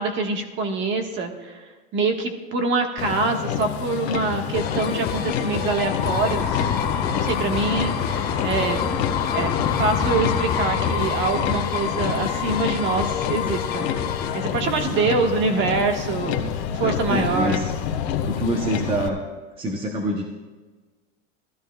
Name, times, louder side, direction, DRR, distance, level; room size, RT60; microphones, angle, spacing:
voice 1, 0.0-6.6 7.1-8.9 9.3-13.9 14.3-16.4 16.7-17.6, right 3 dB, 35° right, 5 dB, 1.4 m, -25 dB
Motor vehicle (road), 3.0-19.1, left 9 dB, 70° left, 1.2 m, -29 dB
sound 1, 4.3-15.2, left 7 dB, 15° left, 0.4 m, -28 dB
sound 2, 4.5-14.5, left 7 dB, 30° left, 1.0 m, -31 dB
voice 2, 14.6-15.1 16.7-17.7 18.3-19.2 19.6-20.2, right 1 dB, 15° right, 2 dB, 0.8 m, -26 dB
18.5 x 13.0 x 2.3 m, 1.3 s
supercardioid pair, 155°, 33 cm